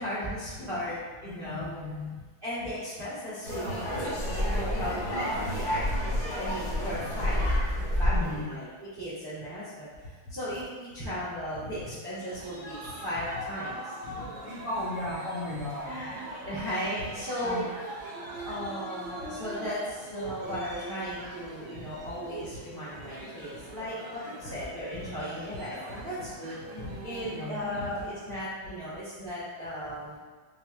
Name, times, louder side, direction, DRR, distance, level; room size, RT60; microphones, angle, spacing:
voice 1, 0.0-1.7 2.4-5.9 6.4-7.5 7.8-8.7 9.0-9.9 10.3-13.9 15.3-15.4 15.9-17.6 18.4-26.5 27.0-30.2, equal, 45° right, -12 dB, 0.7 m, -36 dB
voice 2, 1.2-2.1 4.8-4.9 7.1-7.2 8.1-8.5 11.0-11.1 11.6-11.7 14.0-16.0 17.4-17.7 20.4-20.6 21.7-21.9 24.9-25.0 25.5-25.7 26.2-26.3 26.8-27.0 27.3-27.9 28.3-28.4, left 2 dB, 70° left, -8 dB, 1.0 m, -37 dB
sound 1, 3.4-8.4, equal, 40° left, 0.7 m, -29 dB
sound 2, 12.2-28.5, right 1 dB, 80° right, 1.6 m, -42 dB
5.6 x 2.1 x 2.2 m, 1.4 s
omnidirectional pair, 2.3 m